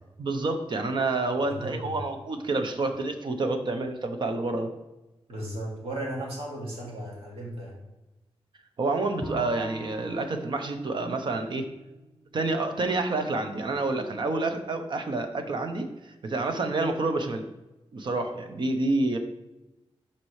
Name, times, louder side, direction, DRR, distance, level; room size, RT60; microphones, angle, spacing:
voice 1, 0.2-4.7 8.8-11.7 12.3-15.9 16.2-17.4 17.9-19.2, right 2 dB, 50° right, 6 dB, 0.8 m, -28 dB
voice 2, 1.5-2.0 5.3-7.8, right 1 dB, 75° right, -3 dB, 2.4 m, -35 dB
Bowed string instrument, 9.2-12.5, equal, 15° left, 0.5 m, -42 dB
12.0 x 4.3 x 3.2 m, 1.0 s
wide cardioid pair, 175°, 10 cm